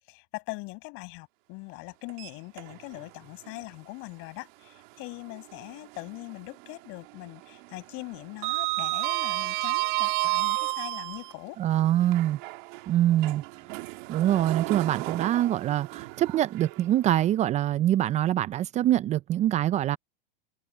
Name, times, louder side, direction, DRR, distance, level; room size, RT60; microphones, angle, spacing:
voice 1, 0.1-11.6, left 27 dB, 45° left, 7.8 m, -41 dB
Sliding door, 2.1-3.1 3.5-3.6 5.3-6.3 6.6-7.0 7.2-11.3 12.0-17.2, right 26 dB, 55° right, 2.1 m, -32 dB
voice 2, 11.6-12.4 12.9-13.4 14.1-20.0, right 12 dB, 25° right, 0.5 m, -24 dB
hypercardioid pair, 130°, 29 cm